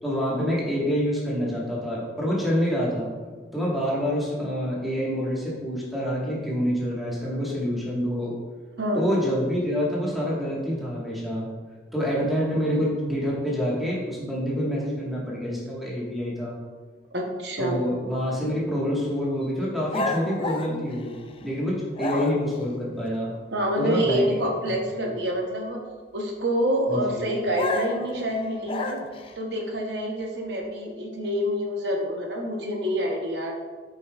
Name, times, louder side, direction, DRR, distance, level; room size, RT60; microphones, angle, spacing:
voice 1, 0.0-3.1 3.5-8.3 8.9-11.5 11.9-16.6 17.6-21.1 21.4-23.3 23.8-25.1 26.9-27.3, equal, ahead, -6 dB, 1.4 m, -27 dB
voice 2, 8.8-9.1 17.1-17.8 20.7-20.9 23.5-25.8 26.1-29.0 29.4-33.6, equal, 75° right, 1 dB, 0.8 m, -27 dB
sound 1, 19.9-21.5 21.9-22.6 27.5-29.3, left 3 dB, 30° left, 0.4 m, -31 dB
8.3 x 5.4 x 2.3 m, 1.5 s
head